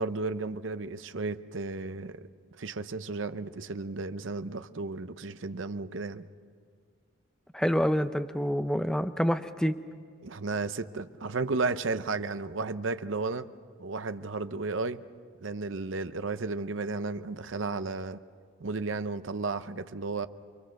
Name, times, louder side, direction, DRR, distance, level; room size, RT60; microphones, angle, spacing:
voice 1, 0.0-2.3 2.6-6.3 10.2-13.5 13.8-15.0 15.4-18.2 18.6-20.3, right 3 dB, 70° right, 11 dB, 0.7 m, -33 dB
voice 2, 7.5-9.8, equal, 5° left, 9 dB, 0.6 m, -27 dB
28.0 x 23.0 x 6.5 m, 2.1 s
head